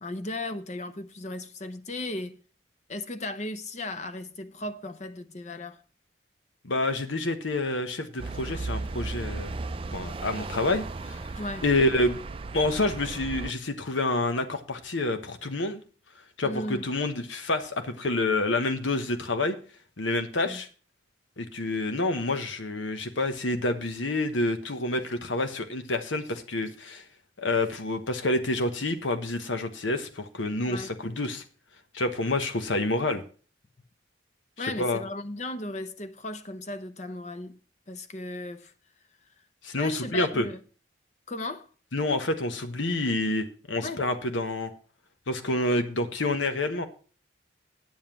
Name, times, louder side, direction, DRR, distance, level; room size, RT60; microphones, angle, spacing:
voice 1, 0.0-2.4 2.9-5.8 11.4-11.7 16.4-16.9 20.4-20.6 30.6-30.9 34.6-37.6 37.9-38.7 39.8-40.6 41.3-41.7 43.8-44.0, left 2 dB, 40° left, 0.7 m, -36 dB
voice 2, 6.6-9.6 9.9-11.2 11.6-12.2 12.5-15.8 16.4-19.6 20.0-20.7 21.4-27.0 27.4-31.4 31.9-33.2 34.6-35.0 39.6-40.5 41.9-44.7 45.3-46.9, left 2 dB, 85° left, 1.2 m, -28 dB
sound 1, 8.2-13.5, right 3 dB, 30° right, 0.4 m, -35 dB
9.4 x 7.3 x 5.9 m
head